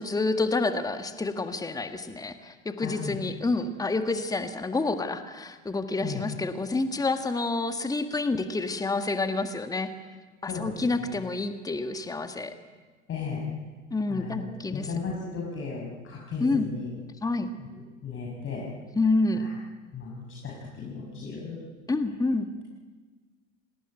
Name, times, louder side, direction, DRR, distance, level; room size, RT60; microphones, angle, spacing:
voice 1, 0.0-9.9 10.4-12.5 13.9-14.9 16.4-16.7 17.2-17.5 18.9-19.4 21.9-22.5, left 3 dB, 10° left, 8 dB, 1.8 m, -28 dB
voice 2, 2.8-3.2 6.0-6.2 10.5-10.7 11.0-11.2 13.1-13.5 14.1-16.9 18.0-18.7 19.4-19.5 19.9-21.6, left 5 dB, 35° left, -3 dB, 6.8 m, -35 dB
28.5 x 19.5 x 9.2 m, 1.3 s
figure-of-eight pair, 80°, 38 cm